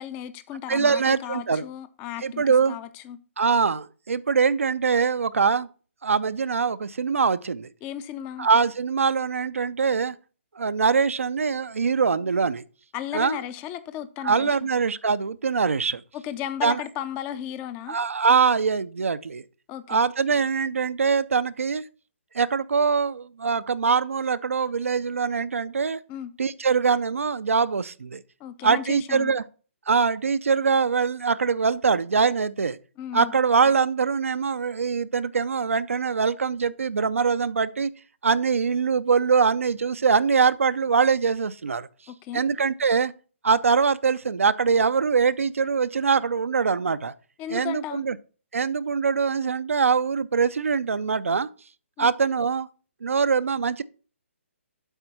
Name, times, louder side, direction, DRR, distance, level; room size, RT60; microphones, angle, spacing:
voice 1, 0.0-3.2 7.8-8.5 12.9-14.6 16.1-18.0 19.7-20.0 26.1-26.3 28.4-29.3 33.0-33.3 42.1-42.4 47.4-48.0 52.0-52.1, left 10 dB, 20° left, 0.5 m, -35 dB
voice 2, 0.7-1.6 2.2-2.8 3.4-5.7 6.0-7.7 8.4-10.2 10.6-12.6 13.1-13.4 14.2-16.0 16.6-16.8 17.9-19.4 19.9-21.8 22.3-26.0 26.4-28.2 28.6-29.4 29.9-32.8 33.1-37.9 38.2-41.9 42.3-43.1 43.4-47.1 47.5-48.2 48.5-51.5 52.0-52.7 53.0-53.8, right 5 dB, 80° right, 0.5 m, -23 dB
8.0 x 4.4 x 5.8 m
hypercardioid pair, 145°, 7 cm